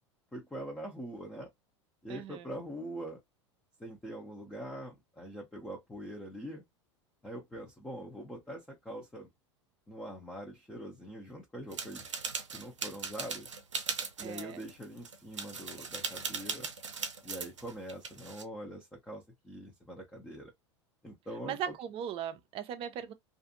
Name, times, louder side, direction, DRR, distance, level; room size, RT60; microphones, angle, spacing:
voice 1, 0.3-1.5 2.0-3.2 3.8-6.6 7.2-9.3 9.9-12.1 12.5-13.5 14.2-16.7 17.2-20.5 21.0-21.7, right 1 dB, 5° left, 0.7 m, -43 dB
voice 2, 2.1-2.5 14.2-14.6 21.5-23.1, right 9 dB, 35° right, 0.5 m, -38 dB
sound 1, 11.7-18.4, right 5 dB, 85° right, 0.5 m, -39 dB
2.5 x 2.4 x 2.6 m
figure-of-eight pair, 85°, 15 cm